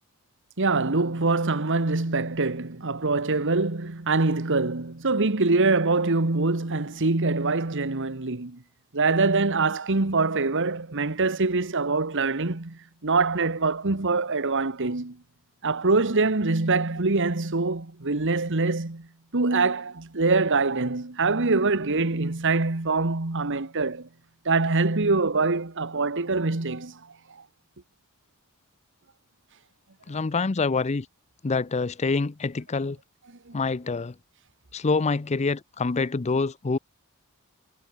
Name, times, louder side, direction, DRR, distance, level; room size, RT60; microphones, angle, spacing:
voice 1, 0.6-8.6 8.9-15.2 15.6-19.1 19.3-24.1 24.4-27.0 33.5-33.6, right 3 dB, 55° right, 1.5 m, -24 dB
voice 2, 30.1-31.1 31.4-33.0 33.5-34.1 34.7-36.8, left 4 dB, 30° left, 0.5 m, -26 dB
head